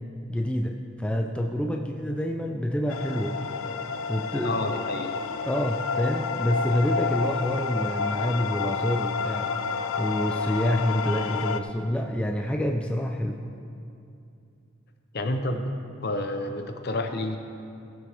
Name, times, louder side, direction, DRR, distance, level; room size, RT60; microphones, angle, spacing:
voice 1, 0.3-3.4 4.1-4.6 5.4-13.4, equal, 5° left, 1 dB, 0.4 m, -27 dB
sound 1, 2.9-11.6, left 5 dB, 80° left, 0.5 m, -30 dB
voice 2, 4.4-5.1 15.1-15.7 16.0-17.4, left 1 dB, 50° left, 6 dB, 0.7 m, -29 dB
17.0 x 7.4 x 3.5 m, 2.6 s
head